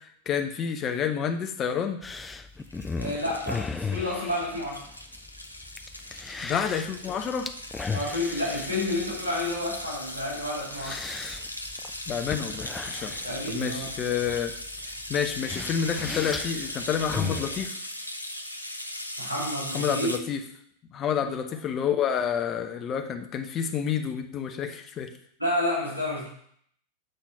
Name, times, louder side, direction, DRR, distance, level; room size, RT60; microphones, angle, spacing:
voice 1, 0.3-2.0 6.4-7.5 12.1-13.1 13.5-14.5 14.9-17.8 19.7-20.4 20.9-25.1, left 8 dB, 30° left, 6 dB, 0.9 m, -29 dB
sound 1, 2.0-17.7, left 4 dB, 15° left, 0.5 m, -37 dB
sound 2, 2.6-20.2, left 1 dB, 85° left, 0.6 m, -38 dB
voice 2, 3.0-4.9 7.9-11.0 13.2-13.9 19.2-20.1 21.2-21.3 25.4-26.3, left 1 dB, 85° right, -5 dB, 2.2 m, -30 dB
7.8 x 4.2 x 5.5 m, 0.66 s
figure-of-eight pair, 90°, 0 cm